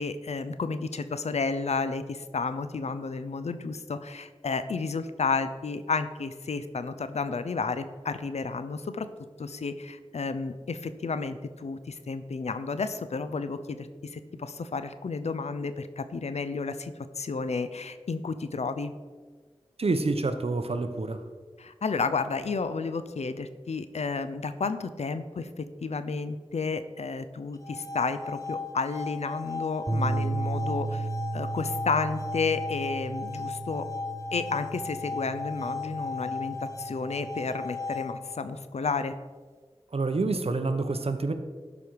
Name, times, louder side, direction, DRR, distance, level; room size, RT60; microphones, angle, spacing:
voice 1, 0.0-9.1 9.4-18.9 21.6-31.1 31.3-33.9 34.3-39.2, left 4 dB, 85° left, 11 dB, 0.6 m, -32 dB
voice 2, 19.8-21.3 39.9-41.3, right 3 dB, 65° right, 8 dB, 0.8 m, -27 dB
sound 1, 27.5-38.5, left 4 dB, 30° left, 0.9 m, -36 dB
sound 2, 29.9-38.3, right 3 dB, 25° right, 0.9 m, -35 dB
12.0 x 5.1 x 4.7 m, 1.5 s
wide cardioid pair, 45°, 11 cm